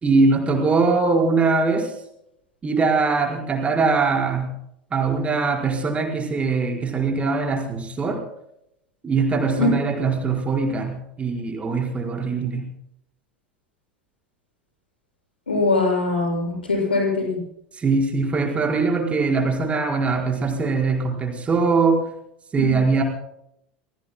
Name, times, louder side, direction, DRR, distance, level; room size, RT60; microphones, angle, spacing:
voice 1, 0.0-1.9 2.6-4.5 4.9-8.2 9.0-12.6 17.8-22.0 22.5-23.0, right 4 dB, 20° right, 1 dB, 4.8 m, -21 dB
voice 2, 15.5-17.4 22.6-22.8, left 3 dB, 80° left, 0 dB, 7.3 m, -22 dB
30.0 x 20.5 x 2.2 m, 0.75 s
figure-of-eight pair, 75°, 5 cm